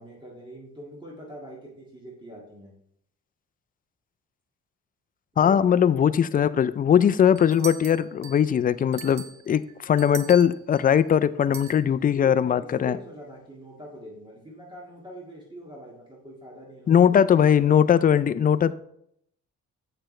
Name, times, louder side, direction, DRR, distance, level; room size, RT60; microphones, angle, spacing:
voice 1, 0.0-2.7 5.3-6.1 11.8-17.4, right 1 dB, 15° right, 1.8 m, -43 dB
voice 2, 5.4-13.0 16.9-18.7, left 8 dB, 30° left, 0.4 m, -20 dB
sound 1, 7.4-8.5 8.9-10.9 11.5-11.8, right 8 dB, 70° right, 0.8 m, -40 dB
7.7 x 6.7 x 3.2 m
cardioid pair, 90°, 30 cm